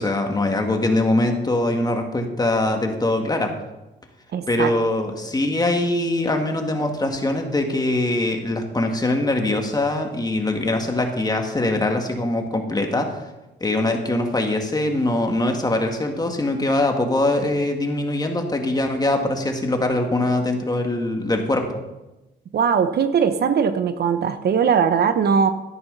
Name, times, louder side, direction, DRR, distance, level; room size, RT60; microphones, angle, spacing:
voice 1, 0.0-3.5 4.5-13.2 13.6-21.8, left 2 dB, 20° left, 4 dB, 1.9 m, -22 dB
voice 2, 4.3-4.7 22.5-25.5, right 6 dB, 55° right, 11 dB, 0.8 m, -20 dB
13.0 x 10.5 x 4.0 m, 1.0 s
cardioid pair, 90°, 20 cm